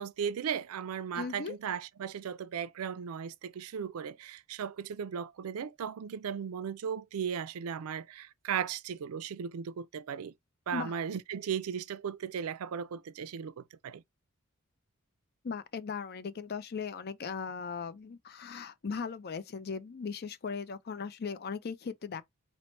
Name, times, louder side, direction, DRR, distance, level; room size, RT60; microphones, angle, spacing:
voice 1, 0.0-10.3 10.7-14.0, right 7 dB, 85° right, 0.4 m, -36 dB
voice 2, 1.1-1.6 10.7-10.9 15.4-22.2, left 5 dB, 45° left, 0.5 m, -38 dB
4.5 x 2.0 x 4.1 m
head